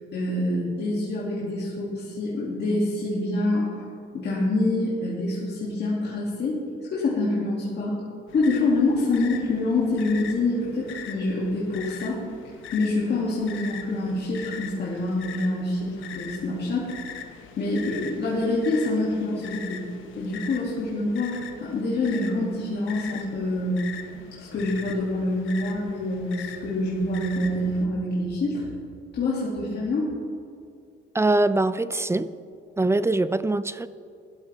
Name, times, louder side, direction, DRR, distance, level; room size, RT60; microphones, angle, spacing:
voice 1, 0.1-3.8 4.1-6.6 6.9-8.0 8.3-12.2 12.7-16.9 17.6-19.9 20.1-23.8 24.4-28.6 29.1-30.1, left 2 dB, 55° left, -6 dB, 2.5 m, -26 dB
sound 1, 8.3-27.9, left 8 dB, 80° left, 1.0 m, -42 dB
voice 2, 31.1-32.3 32.8-33.9, right 2 dB, 15° right, 15 dB, 0.4 m, -23 dB
16.0 x 12.0 x 3.5 m, 2.4 s
cardioid pair, 90°, 20 cm